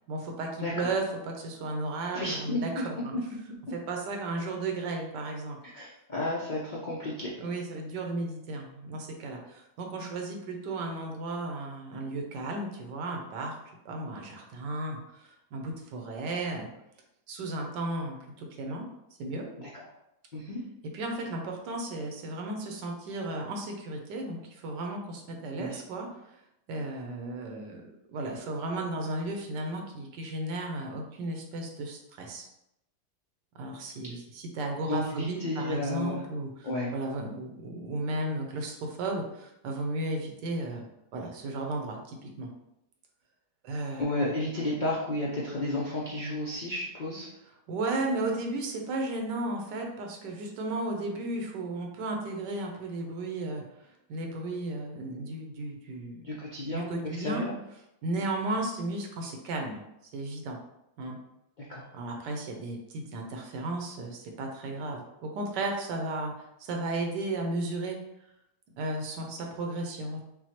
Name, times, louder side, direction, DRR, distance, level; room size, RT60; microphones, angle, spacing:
voice 1, 0.1-3.1 3.7-5.6 7.4-13.6 13.8-16.7 17.3-18.8 19.2-19.4 20.8-26.1 26.7-27.8 28.1-32.5 33.5-40.9 41.1-42.5 43.6-44.1 47.7-56.3 56.7-57.4 58.0-59.8 60.1-60.6 61.0-61.2 61.9-66.3 66.6-68.0 68.8-70.2, right 2 dB, 85° right, 2 dB, 1.4 m, -34 dB
voice 2, 2.1-2.6 5.7-7.3 19.6-19.8 20.3-20.6 25.6-25.8 34.9-36.2 36.6-36.9 44.0-47.3 56.2-57.5 61.7-61.8, left 1 dB, 55° left, -5 dB, 0.5 m, -32 dB
6.1 x 2.2 x 2.9 m, 0.84 s
omnidirectional pair, 1.8 m